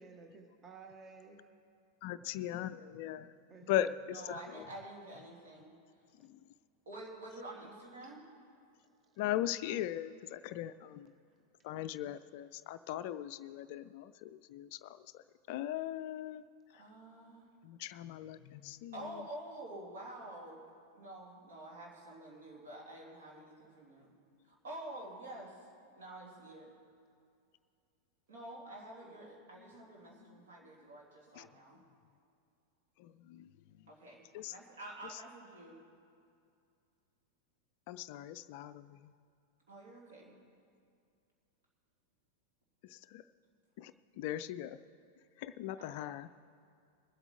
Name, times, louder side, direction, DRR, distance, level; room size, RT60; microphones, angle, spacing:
voice 1, 0.0-1.5 3.5-3.9 6.2-6.3 9.0-9.2 11.3-11.4, right 5 dB, 25° right, 4 dB, 1.1 m, -54 dB
voice 2, 2.0-3.3 3.7-4.6 6.2-6.4 9.2-11.1 11.6-16.4 16.7-16.8 17.6-19.3 31.4-31.5 33.0-33.5 34.3-34.5 37.9-39.1 42.8-43.2 43.8-44.8 45.4-46.3, left 12 dB, 50° left, 14 dB, 0.3 m, -39 dB
voice 3, 4.1-5.7 6.9-8.2 16.7-17.5 18.9-20.6 20.9-24.1 24.5-25.6 25.9-26.7 28.3-31.8 33.9-35.8 39.7-40.4 45.8-46.1, right 1 dB, 60° right, -2 dB, 2.8 m, -48 dB
21.5 x 8.0 x 4.4 m, 2.4 s
figure-of-eight pair, 90°, 0 cm